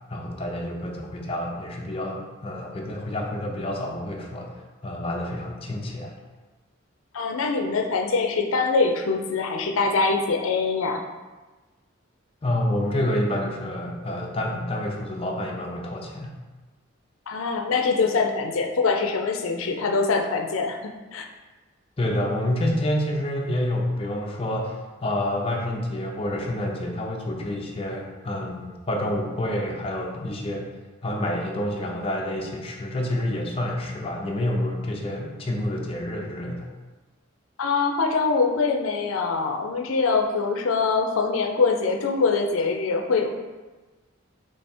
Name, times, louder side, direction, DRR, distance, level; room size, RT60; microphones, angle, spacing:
voice 1, 0.1-4.5 4.8-6.1 12.4-16.4 22.0-30.7 31.0-36.7, left 1 dB, 30° left, 0 dB, 0.5 m, -28 dB
voice 2, 7.1-11.0 17.3-21.2 37.6-43.3, left 4 dB, 85° left, 3 dB, 0.5 m, -23 dB
3.4 x 3.2 x 4.3 m, 1.2 s
head